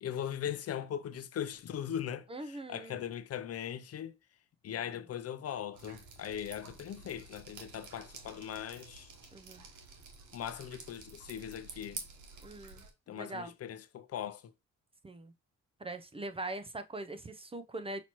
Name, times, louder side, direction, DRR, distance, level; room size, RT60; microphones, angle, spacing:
voice 1, 0.0-4.1 4.6-9.1 10.3-12.0 13.1-14.5, left 9 dB, 55° left, 0.6 m, -39 dB
voice 2, 2.3-3.0 9.3-9.7 12.4-12.8 13.1-13.5 15.0-15.3 15.8-18.0, right 2 dB, 20° right, 0.5 m, -42 dB
Drip, 5.7-12.9, right 4 dB, 75° right, 1.1 m, -50 dB
5.8 x 2.8 x 3.0 m
cardioid pair, 90°, 30 cm